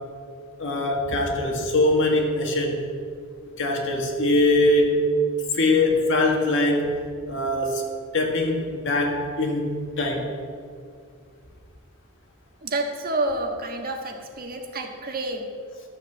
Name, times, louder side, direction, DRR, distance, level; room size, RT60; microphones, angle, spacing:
voice 1, 0.6-2.9 3.6-5.0 5.5-7.0 7.3-10.3, left 2 dB, 60° left, 2 dB, 1.9 m, -22 dB
voice 2, 12.6-15.5, right 2 dB, 45° right, 3 dB, 1.5 m, -29 dB
12.5 x 7.1 x 7.4 m, 2.2 s
head